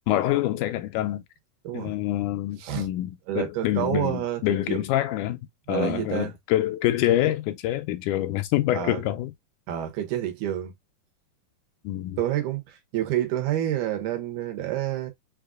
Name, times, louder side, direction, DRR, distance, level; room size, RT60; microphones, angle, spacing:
voice 1, 0.1-1.2 1.7-5.4 5.7-9.3 11.8-12.2, left 14 dB, 85° left, 2.0 m, -26 dB
voice 2, 1.6-2.0 2.6-2.9 3.3-4.8 5.7-6.3 8.7-9.0 9.7-10.7 12.2-15.1, right 12 dB, 80° right, 2.5 m, -28 dB
6.6 x 2.4 x 2.3 m
omnidirectional pair, 3.6 m